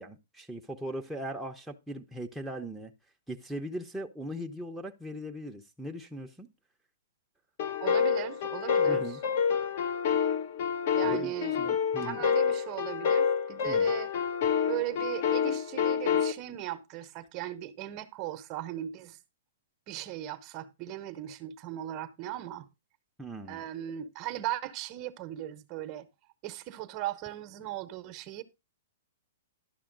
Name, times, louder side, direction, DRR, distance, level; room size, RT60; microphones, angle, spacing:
voice 1, 0.0-2.9 3.3-6.5 8.9-9.2 11.0-12.2 13.6-13.9 23.2-23.7, right 1 dB, 5° right, 0.7 m, -39 dB
sound 1, 7.6-16.3, left 7 dB, 55° left, 1.0 m, -28 dB
voice 2, 7.8-9.2 10.9-11.6 12.0-14.1 14.7-19.2 19.9-22.7 23.5-26.1 26.4-28.4, right 13 dB, 40° right, 0.9 m, -38 dB
11.5 x 5.7 x 3.8 m
hypercardioid pair, 125°, 0 cm